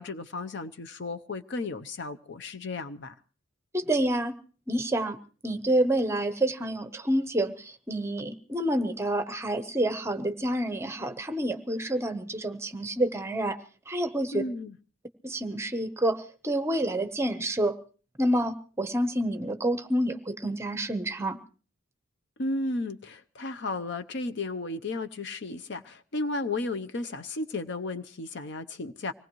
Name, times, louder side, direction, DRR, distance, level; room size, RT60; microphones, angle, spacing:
voice 1, 0.0-3.1 14.3-14.8 22.4-29.1, left 2 dB, 60° left, 0.7 m, -34 dB
voice 2, 3.7-4.3 4.7-5.2 5.4-13.6 13.9-14.4 15.2-17.8 18.2-21.4, right 1 dB, 15° right, 0.9 m, -28 dB
25.0 x 19.0 x 3.1 m
head